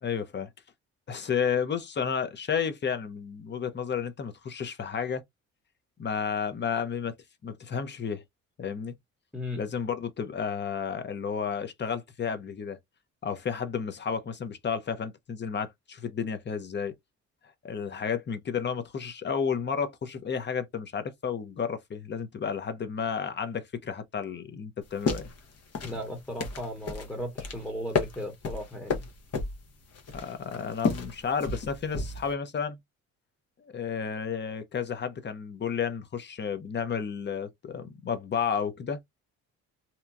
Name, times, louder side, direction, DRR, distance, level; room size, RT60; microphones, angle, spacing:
voice 1, 0.0-0.5 1.1-5.2 6.0-7.1 7.4-8.2 8.6-8.9 9.6-12.8 13.2-16.9 17.6-25.3 30.1-32.8 33.6-39.0, left 6 dB, 35° left, 0.7 m, -32 dB
sound 1, 24.8-32.3, left 4 dB, 55° left, 1.0 m, -33 dB
voice 2, 25.8-29.0, equal, 5° left, 1.0 m, -36 dB
2.9 x 2.2 x 2.5 m
cardioid pair, 90°, 30 cm